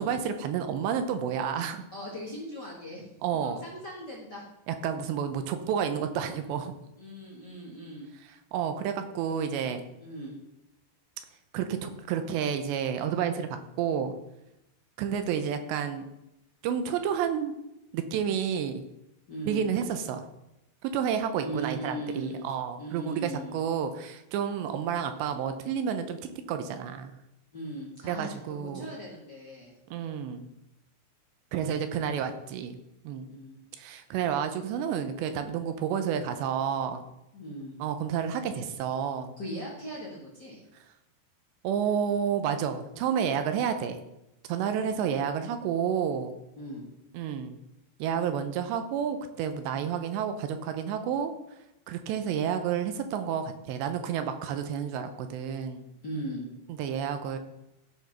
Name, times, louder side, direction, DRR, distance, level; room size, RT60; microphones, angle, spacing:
voice 1, 0.0-1.8 3.2-3.6 4.7-6.7 8.5-9.8 11.5-14.2 15.0-16.1 16.6-17.6 17.9-18.8 19.5-20.2 20.8-27.1 28.0-28.9 29.9-30.5 31.5-32.8 33.0-33.3 33.8-37.0 37.8-39.3 41.6-44.0 44.5-46.3 47.1-47.6 48.0-51.3 51.9-55.8 56.8-57.4, right 8 dB, 80° right, 8 dB, 3.0 m, -30 dB
voice 2, 1.9-3.1 3.3-4.4 7.0-8.1 10.0-10.4 19.3-19.6 21.4-22.5 22.8-23.5 27.5-29.7 33.3-33.6 37.3-37.8 39.4-40.6 46.6-46.9 55.9-56.5, right 1 dB, 55° left, -5 dB, 1.1 m, -39 dB
15.0 x 5.2 x 5.9 m, 0.88 s
omnidirectional pair, 5.2 m